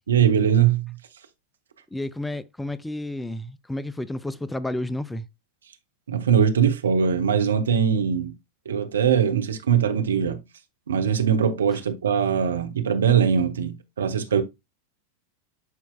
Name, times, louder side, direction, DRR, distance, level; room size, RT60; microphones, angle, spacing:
voice 1, 0.1-0.9 6.1-8.3 8.6-10.4 10.9-14.4, right 7 dB, 65° right, 1.0 m, -21 dB
voice 2, 1.9-5.3, left 1 dB, 5° left, 0.4 m, -31 dB
11.5 x 4.4 x 2.2 m
figure-of-eight pair, 90°, 0 cm